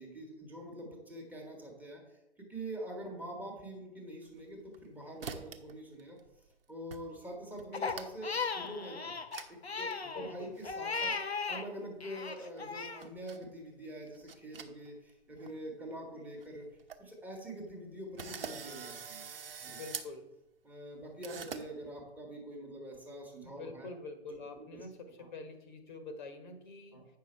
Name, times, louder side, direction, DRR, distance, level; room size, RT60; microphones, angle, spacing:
voice 1, 0.0-2.0 2.5-6.2 6.7-9.1 9.5-11.2 11.5-16.7 17.0-19.3 19.6-19.8 20.6-23.9 24.3-24.8 25.2-25.3 26.9-27.1, right 1 dB, 5° right, -1 dB, 1.3 m, -45 dB
sound 1, 4.3-4.9 5.2-5.7 6.0-6.5 6.9-7.0 7.3-8.3 8.7-8.8 9.3-9.5 9.8-9.9 10.5-11.1 12.4-13.4 14.0-15.1 15.4-15.5 16.1-16.2 16.4-16.5 16.7-17.0 17.5-17.6 18.2-20.1 21.2-21.6, right 6 dB, 65° right, 1.0 m, -45 dB
Crying sobbing, 7.7-11.6 12.0-13.0, left 4 dB, 85° left, 0.7 m, -37 dB
voice 2, 10.0-10.5 19.7-20.3 23.4-27.0, left 3 dB, 50° left, 7 dB, 1.3 m, -46 dB
8.9 x 5.7 x 4.4 m, 0.91 s
figure-of-eight pair, 115°, 31 cm